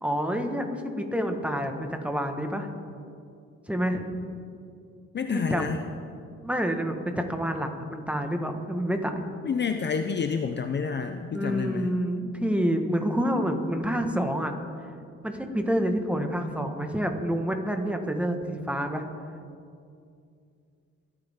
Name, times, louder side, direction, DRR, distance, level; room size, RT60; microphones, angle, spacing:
voice 1, 0.0-2.7 3.7-4.0 5.3-5.7 6.4-9.2 11.3-14.5 15.2-19.0, equal, 5° right, 5 dB, 1.5 m, -28 dB
voice 2, 5.1-5.8 9.4-11.9, left 6 dB, 35° left, 7 dB, 0.6 m, -29 dB
27.5 x 9.7 x 3.7 m, 2.4 s
cardioid pair, 90°, 30 cm